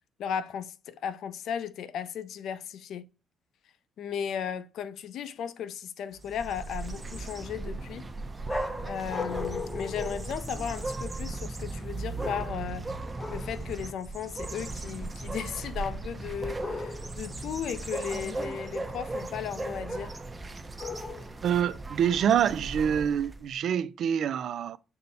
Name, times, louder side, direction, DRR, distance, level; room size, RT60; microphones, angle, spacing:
voice 1, 0.2-3.1 4.0-8.1 8.8-12.9 13.3-20.2, left 8 dB, 75° left, 0.4 m, -36 dB
sound 1, 6.2-23.5, right 2 dB, 20° right, 0.6 m, -37 dB
sound 2, 8.5-11.0 12.2-12.8 13.2-13.6 16.6-17.3 20.8-21.5, left 3 dB, 30° left, 0.7 m, -38 dB
voice 2, 21.4-24.8, right 8 dB, 70° right, 0.3 m, -26 dB
5.4 x 2.1 x 4.0 m
cardioid pair, 90°, 0 cm